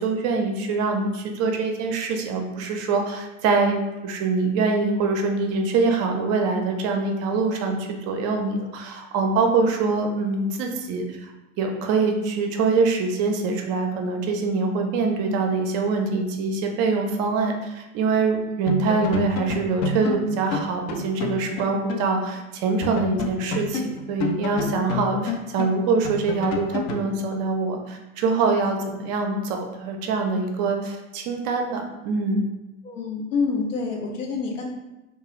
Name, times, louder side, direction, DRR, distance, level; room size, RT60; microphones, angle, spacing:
voice 1, 0.0-3.8 4.0-11.3 11.6-32.4, right 4 dB, 40° right, 3 dB, 0.5 m, -24 dB
sound 1, 18.2-18.4 18.7-22.1 22.4-22.5 22.8-27.1, left 4 dB, 40° left, 0.4 m, -29 dB
voice 2, 32.8-34.7, left 4 dB, 80° left, -1 dB, 0.7 m, -27 dB
2.3 x 2.3 x 2.9 m, 1.0 s
hypercardioid pair, 85°, 37 cm